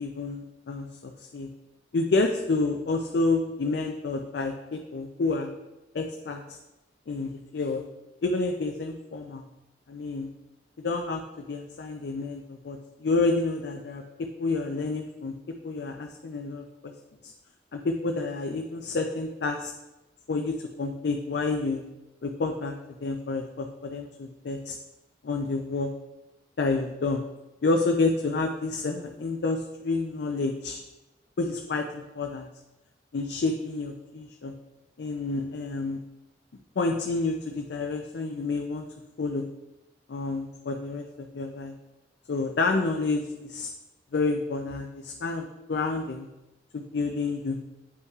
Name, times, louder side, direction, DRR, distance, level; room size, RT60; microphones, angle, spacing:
voice 1, 0.0-1.5 1.9-5.5 5.9-6.6 7.1-7.8 8.2-9.4 9.9-10.3 10.8-11.2 11.5-14.0 14.4-15.3 15.6-16.7 17.7-19.7 20.3-21.8 22.2-22.7 23.0-24.8 25.2-25.9 26.6-27.2 27.6-30.8 31.4-32.5 33.1-34.5 35.0-36.0 36.8-38.8 39.2-39.5 40.1-41.0 41.3-41.7 42.3-43.7 44.1-46.3 46.7-47.6, left 3 dB, 70° left, 3 dB, 0.4 m, -29 dB
8.0 x 5.3 x 2.4 m, 1.0 s
head